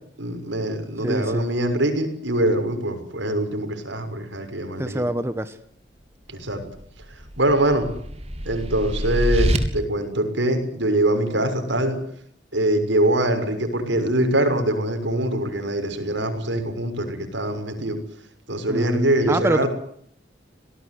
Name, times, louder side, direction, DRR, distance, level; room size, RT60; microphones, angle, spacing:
voice 1, 0.2-5.1 6.3-6.6 7.1-7.9 8.4-12.0 12.5-18.0 18.5-19.7, right 1 dB, 75° right, 7 dB, 6.5 m, -23 dB
voice 2, 1.0-1.5 4.8-5.6 18.7-19.7, right 1 dB, 15° right, 10 dB, 1.2 m, -25 dB
sound 1, 6.8-9.6, equal, 35° right, 3.5 m, -26 dB
26.5 x 19.0 x 9.7 m, 0.65 s
head